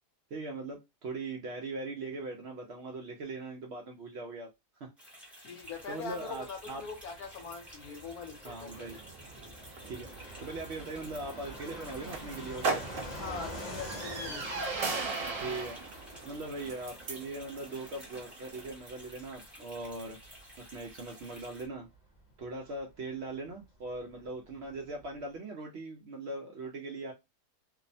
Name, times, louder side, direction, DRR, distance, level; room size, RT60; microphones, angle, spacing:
voice 1, 0.3-4.5 4.8-4.9 5.3-5.4 5.9-6.8 8.4-9.0 9.9-12.9 15.4-15.8 16.2-20.2 20.6-21.9 22.4-27.1, right 2 dB, 75° right, 0.6 m, -40 dB
sound 1, 5.0-21.7, equal, ahead, 0.6 m, -53 dB
voice 2, 5.4-8.9 13.1-14.5, left 5 dB, 70° left, 1.1 m, -42 dB
Fixed-wing aircraft airplane, 5.6-24.0 24.2-24.3 24.5-25.3, equal, 35° left, 0.8 m, -48 dB
sound 2, 8.6-18.7, right 4 dB, 60° right, 1.0 m, -39 dB
2.8 x 2.0 x 2.6 m
omnidirectional pair, 1.7 m